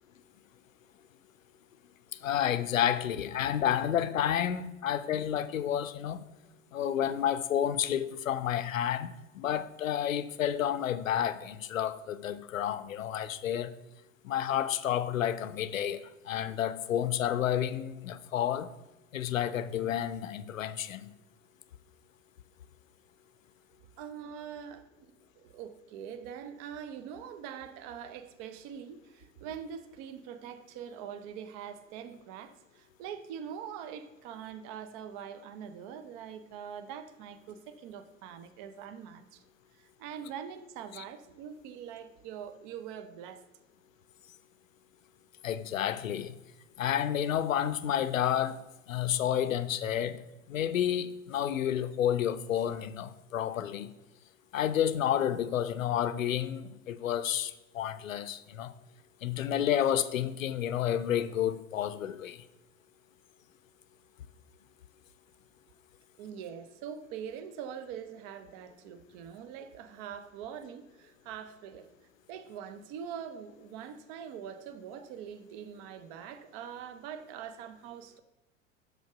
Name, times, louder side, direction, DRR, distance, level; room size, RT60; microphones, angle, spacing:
voice 1, 2.1-6.3 6.7-13.7 14.2-18.7 19.1-21.1 41.0-41.1 45.4-46.3 46.8-48.6 48.9-50.2 50.5-53.9 54.5-58.7 59.2-62.4, left 10 dB, 75° left, 0.5 m, -30 dB
voice 2, 24.0-39.4 39.7-43.4 66.2-71.9 72.3-78.2, right 8 dB, 35° right, 0.6 m, -43 dB
6.2 x 5.1 x 4.8 m
figure-of-eight pair, 85°, 40 cm